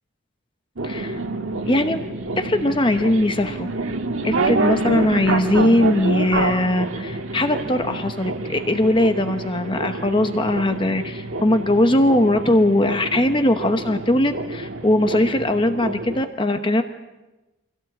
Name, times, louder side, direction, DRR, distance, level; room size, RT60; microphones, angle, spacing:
voice 1, 0.8-1.2 1.7-2.0 2.4-3.7 4.2-16.8, left 1 dB, 25° left, 7 dB, 0.9 m, -20 dB
sound 1, 0.8-16.2, right 2 dB, 75° right, 1.4 m, -27 dB
23.5 x 17.0 x 8.5 m, 1.1 s
head